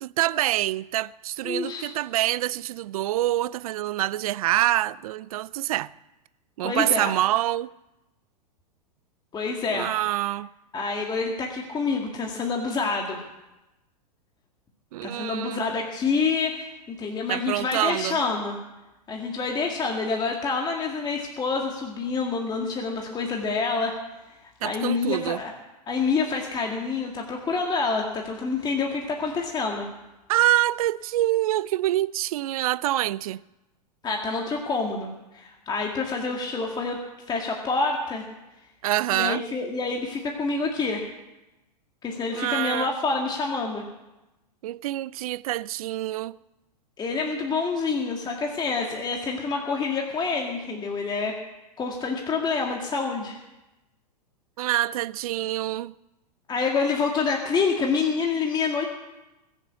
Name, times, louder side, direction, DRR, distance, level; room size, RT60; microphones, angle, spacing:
voice 1, 0.0-5.9 6.6-7.7 9.7-10.5 14.9-15.6 17.3-18.2 24.6-25.4 30.3-33.4 38.8-39.4 42.3-42.9 44.6-46.4 54.6-55.9, right 15 dB, 60° right, 0.5 m, -26 dB
voice 2, 1.4-1.9 6.6-7.2 9.3-9.9 10.7-13.3 15.0-18.6 19.1-24.0 24.4-25.5 25.9-29.9 34.0-37.0 37.3-38.3 39.1-41.1 42.0-43.9 47.0-51.4 51.8-53.4 56.5-58.8, left 4 dB, 20° left, 2.1 m, -27 dB
20.0 x 7.3 x 8.2 m
hypercardioid pair, 110°, 21 cm